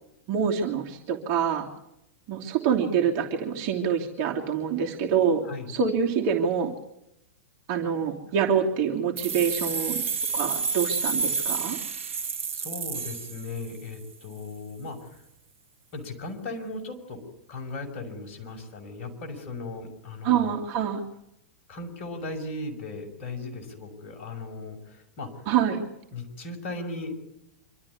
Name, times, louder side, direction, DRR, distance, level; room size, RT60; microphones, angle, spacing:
voice 1, 0.3-1.7 2.3-6.7 7.7-10.0 10.3-11.8 20.2-21.0 25.5-25.8, right 7 dB, 45° right, 0 dB, 2.9 m, -26 dB
sound 1, 9.2-13.9, right 5 dB, 70° right, 1.7 m, -30 dB
voice 2, 12.5-15.2 15.9-17.2 17.5-20.6 21.7-25.5 26.1-27.1, left 2 dB, 50° left, 4 dB, 6.2 m, -37 dB
26.0 x 13.0 x 9.6 m, 0.81 s
figure-of-eight pair, 100°, 7 cm